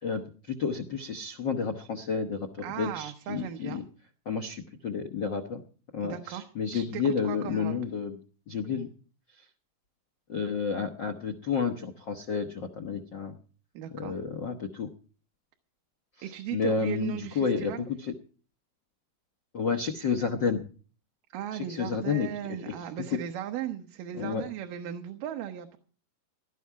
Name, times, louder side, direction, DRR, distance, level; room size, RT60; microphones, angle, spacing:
voice 1, 0.0-3.8 4.2-5.6 5.9-8.2 8.5-8.9 9.3-9.5 10.3-13.3 13.9-14.9 16.2-18.1 19.5-20.7 21.5-23.2 24.1-24.5, left 5 dB, 70° left, 9 dB, 1.1 m, -31 dB
voice 2, 2.6-3.8 6.0-6.4 6.7-7.7 8.8-8.9 13.7-14.2 16.2-17.8 21.3-25.8, right 11 dB, 80° right, 5 dB, 2.7 m, -37 dB
17.0 x 12.5 x 4.7 m, 0.41 s
omnidirectional pair, 3.9 m